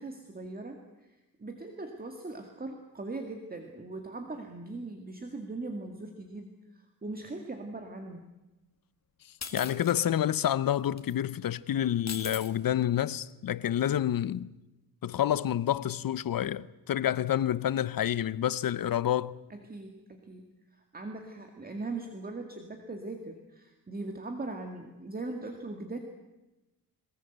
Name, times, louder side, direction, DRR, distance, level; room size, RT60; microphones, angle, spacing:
voice 1, 0.0-8.2 17.0-17.1 19.5-26.0, right 2 dB, 25° right, 2.1 m, -40 dB
sound 1, 9.4-10.0 11.0-11.1 12.1-12.5, left 5 dB, 50° left, 2.1 m, -39 dB
voice 2, 9.5-14.5 15.0-19.4, left 11 dB, 70° left, 0.8 m, -28 dB
22.0 x 20.5 x 8.1 m
wide cardioid pair, 130°, 36 cm